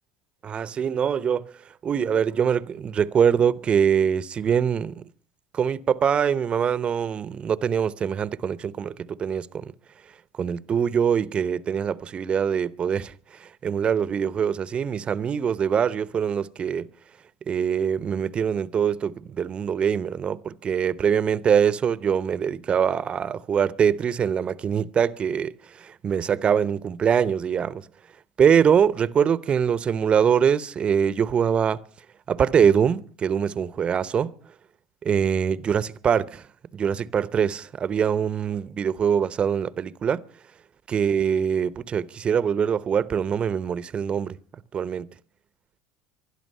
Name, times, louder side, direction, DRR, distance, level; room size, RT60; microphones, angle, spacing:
voice 1, 0.4-1.5 1.8-5.0 5.5-9.7 10.4-13.1 13.4-16.9 17.5-27.8 28.4-31.8 32.3-34.3 35.0-36.4 36.7-40.2 40.9-44.4 44.7-45.1, right 7 dB, 35° right, 0.9 m, -23 dB
20.0 x 12.5 x 5.5 m
hypercardioid pair, 80°, 3 cm